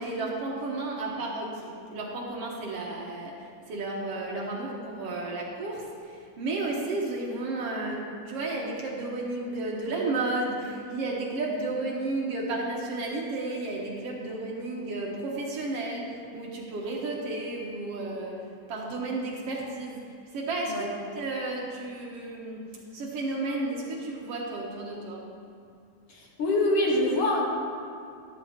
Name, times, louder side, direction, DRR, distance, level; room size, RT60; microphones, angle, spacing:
voice 1, 0.0-18.4 18.7-22.7 22.9-25.2, right 2 dB, 65° right, -2 dB, 1.5 m, -32 dB
voice 2, 26.1-27.4, left 1 dB, 55° left, -2 dB, 1.9 m, -25 dB
13.0 x 11.5 x 2.9 m, 2.3 s
omnidirectional pair, 4.1 m